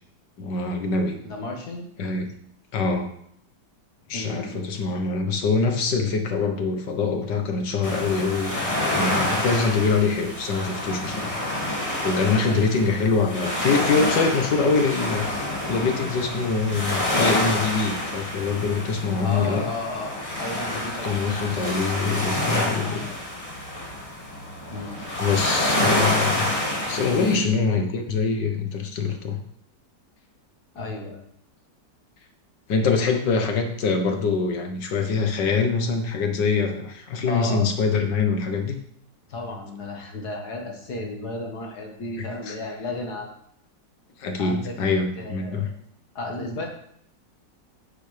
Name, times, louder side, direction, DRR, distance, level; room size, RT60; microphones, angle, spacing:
voice 1, 0.4-1.2 2.0-2.3 2.7-3.1 4.1-11.3 12.0-15.3 15.7-19.6 21.0-23.0 25.2-26.5 26.9-29.4 32.7-38.8 42.5-42.6 44.2-45.7, left 4 dB, 85° left, 4 dB, 1.8 m, -24 dB
voice 2, 1.2-1.9 4.1-4.7 12.5-12.6 19.2-21.2 22.5-23.1 24.7-25.0 27.1-27.4 30.7-31.2 37.2-37.7 39.3-43.3 44.4-44.7 45.2-45.7 46.2-46.7, left 2 dB, 65° left, 1 dB, 2.1 m, -33 dB
sound 1, 7.8-27.4, left 1 dB, 20° left, 2.0 m, -28 dB
10.0 x 7.7 x 3.4 m, 0.69 s
omnidirectional pair, 1.9 m